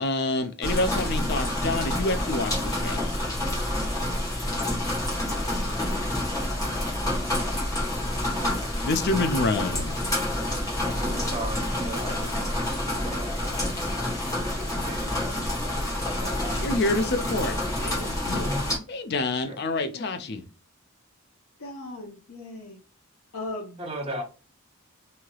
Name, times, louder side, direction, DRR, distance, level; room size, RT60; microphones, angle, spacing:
voice 1, 0.0-3.0 8.8-10.0 16.6-17.5 17.8-18.5 18.9-20.4, left 2 dB, 45° left, 0.4 m, -27 dB
sound 1, 0.6-18.8, left 1 dB, 15° left, 1.1 m, -28 dB
voice 2, 11.0-13.6 13.9-14.2 14.6-15.4 16.1-16.6 18.0-18.1 18.4-18.7 19.5-19.6 23.8-24.2, right 1 dB, 25° right, 0.8 m, -37 dB
voice 3, 19.7-20.2 21.6-22.8 23.3-23.8, left 2 dB, 70° left, 0.8 m, -38 dB
3.1 x 2.8 x 2.3 m
head